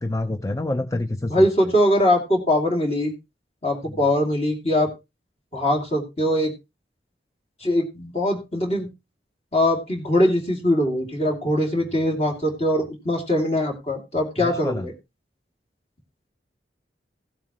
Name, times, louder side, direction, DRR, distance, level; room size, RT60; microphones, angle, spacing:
voice 1, 0.0-1.5 3.9-4.0 14.4-14.9, left 2 dB, 15° left, 10 dB, 0.5 m, -27 dB
voice 2, 1.3-3.1 3.6-4.9 5.5-6.5 7.6-8.9 9.5-14.9, left 1 dB, 35° left, 1 dB, 2.6 m, -22 dB
16.0 x 7.9 x 3.0 m, 0.25 s
head